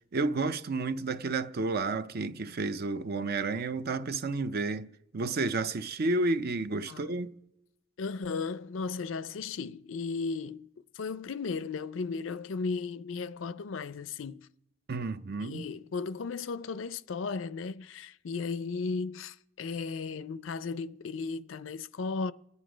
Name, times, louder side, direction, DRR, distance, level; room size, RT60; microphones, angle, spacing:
voice 1, 0.1-4.9 5.1-7.3 14.9-15.7, right 3 dB, 55° right, 0.6 m, -31 dB
voice 2, 8.0-10.7 11.0-14.5 15.4-22.3, left 4 dB, 80° left, 0.5 m, -35 dB
28.0 x 9.7 x 5.0 m
head